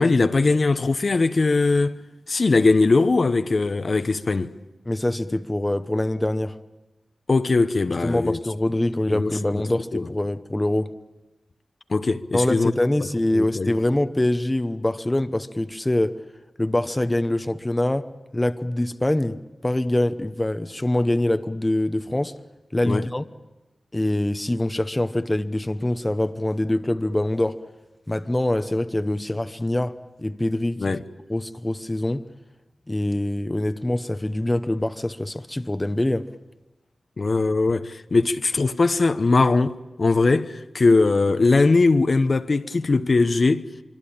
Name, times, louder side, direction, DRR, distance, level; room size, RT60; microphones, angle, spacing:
voice 1, 0.0-2.0 2.3-4.5 7.3-8.4 9.1-9.7 9.9-10.1 11.9-12.7 13.3-13.7 22.9-23.0 30.8-31.0 37.2-43.7, left 3 dB, 50° left, 0.9 m, -20 dB
voice 2, 4.9-6.6 8.0-10.9 12.3-16.2 16.6-18.1 18.3-22.4 22.7-23.2 23.9-27.6 28.1-30.8 31.3-32.3 32.9-36.3, left 1 dB, 20° left, 0.9 m, -24 dB
25.0 x 24.5 x 8.7 m
wide cardioid pair, 65°, 0 cm